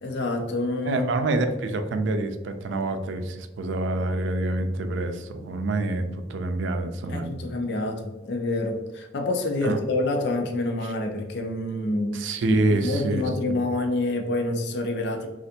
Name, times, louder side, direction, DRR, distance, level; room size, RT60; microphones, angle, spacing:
voice 1, 0.0-1.3 7.1-12.2 12.8-15.3, left 2 dB, 65° left, 4 dB, 0.4 m, -27 dB
voice 2, 0.8-7.4 9.6-9.8 12.1-13.6, right 2 dB, 90° right, 8 dB, 0.4 m, -26 dB
3.3 x 2.4 x 2.7 m, 1.2 s
head